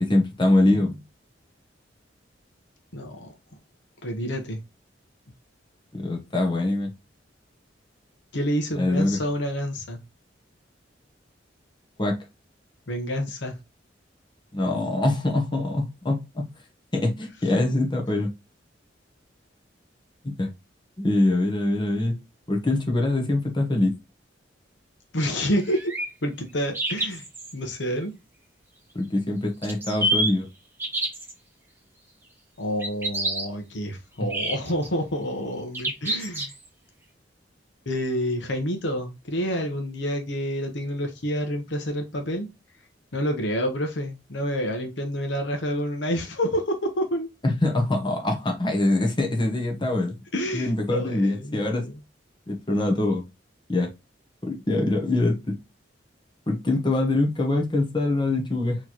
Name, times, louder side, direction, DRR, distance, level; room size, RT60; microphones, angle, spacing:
voice 1, 0.0-1.0 5.9-6.9 8.8-9.2 12.0-12.2 14.5-16.4 16.9-18.3 20.2-20.5 21.0-22.2 22.5-23.9 28.9-30.5 47.4-50.2 50.5-51.8 52.5-53.2 53.7-53.9 54.4-55.5 56.5-58.8, left 2 dB, 25° left, 2 dB, 0.9 m, -24 dB
voice 2, 2.9-3.3 4.0-4.6 8.3-10.0 12.9-13.6 25.1-25.9 26.2-27.2 27.5-28.1 32.6-36.5 37.9-42.5 43.1-47.3 50.3-51.9, equal, 70° left, 4 dB, 0.9 m, -28 dB
sound 1, 25.6-26.1 26.7-27.5 29.6-30.3 30.8-31.3 32.8-33.5 34.3-34.9 35.7-36.7, right 1 dB, 15° right, 1.0 m, -27 dB
4.3 x 3.0 x 2.9 m, 0.24 s
head